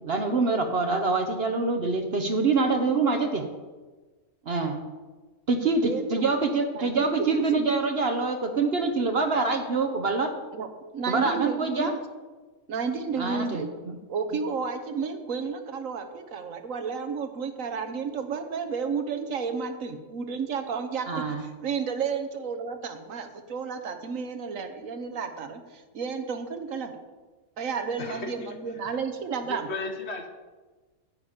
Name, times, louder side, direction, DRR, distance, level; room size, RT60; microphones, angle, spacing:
voice 1, 0.0-3.4 4.5-4.8 5.5-10.3 11.1-11.9 13.2-13.9 21.1-21.4, right 3 dB, 50° right, 6 dB, 0.9 m, -25 dB
voice 2, 5.8-6.3 6.8-7.1 7.6-7.7 10.5-10.7 10.9-12.0 12.7-13.7 14.1-26.9 27.6-29.7, right 5 dB, 65° right, 8 dB, 1.2 m, -32 dB
voice 3, 28.0-29.0 29.4-30.3, left 2 dB, 50° left, 6 dB, 1.2 m, -36 dB
9.8 x 8.4 x 5.0 m, 1.3 s
omnidirectional pair, 1.5 m